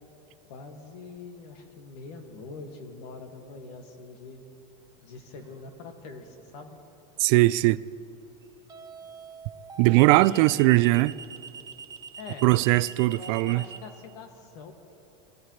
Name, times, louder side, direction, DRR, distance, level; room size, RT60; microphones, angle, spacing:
voice 1, 0.5-4.4 5.0-6.8 10.2-10.8 12.2-12.4 13.0-14.7, left 4 dB, 70° left, 2.1 m, -44 dB
sound 1, 5.4-5.7 8.7-13.8, right 6 dB, 20° right, 0.8 m, -43 dB
voice 2, 7.2-7.8 9.8-11.1 12.4-13.6, right 20 dB, 55° right, 0.4 m, -20 dB
23.0 x 16.0 x 3.3 m
supercardioid pair, 145°, 21 cm